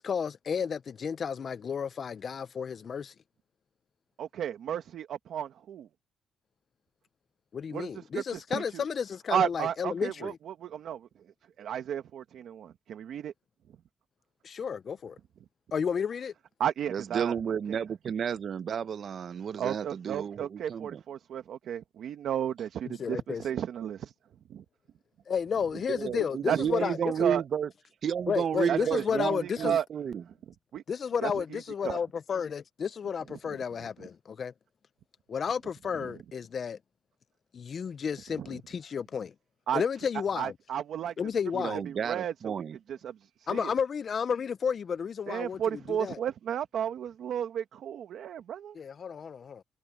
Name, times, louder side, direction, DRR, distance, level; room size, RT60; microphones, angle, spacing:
voice 1, 0.0-3.1 7.5-10.4 14.4-15.2 15.7-16.3 22.9-23.4 25.3-27.0 28.3-29.8 30.9-34.5 35.3-36.8 37.5-39.3 39.7-40.5 41.2-41.8 43.5-46.2 48.7-49.6, left 6 dB, 50° left, 0.4 m, -32 dB
voice 2, 4.2-5.9 7.7-8.8 9.3-11.1 11.6-13.3 16.6-17.3 17.7-17.8 19.6-24.1 24.5-24.6 26.5-27.4 28.7-29.3 29.6-29.8 30.7-30.8 31.2-32.0 33.3-33.4 36.0-36.1 38.4-38.6 39.7-39.8 40.4-41.1 41.9-42.5 42.9-43.7 45.3-48.8, right 9 dB, 75° right, 1.4 m, -33 dB
voice 3, 16.9-21.0 25.9-27.7 28.0-30.2 41.5-42.8, right 7 dB, 55° right, 0.7 m, -31 dB
cardioid pair, 120°, 0 cm